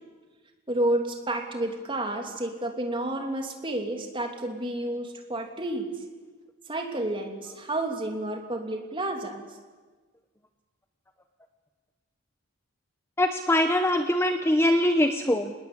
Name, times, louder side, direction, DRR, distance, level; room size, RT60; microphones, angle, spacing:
voice 1, 0.7-5.9 6.7-9.4, right 1 dB, 25° right, 3 dB, 3.0 m, -30 dB
voice 2, 13.2-15.5, left 1 dB, 10° left, 7 dB, 1.0 m, -23 dB
27.5 x 19.5 x 8.7 m, 1.4 s
head